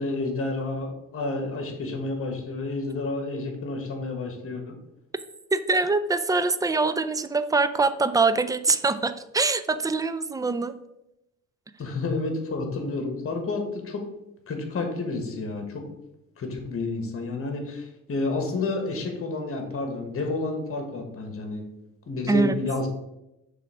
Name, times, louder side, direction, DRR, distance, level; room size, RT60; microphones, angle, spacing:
voice 1, 0.0-4.7 11.8-14.0 14.5-15.8 16.4-21.6 22.1-22.9, left 3 dB, 45° left, 4 dB, 1.4 m, -30 dB
voice 2, 5.5-10.7 22.3-22.5, right 3 dB, 10° right, 12 dB, 0.3 m, -24 dB
6.2 x 3.4 x 4.8 m, 0.89 s
cardioid pair, 90°, 30 cm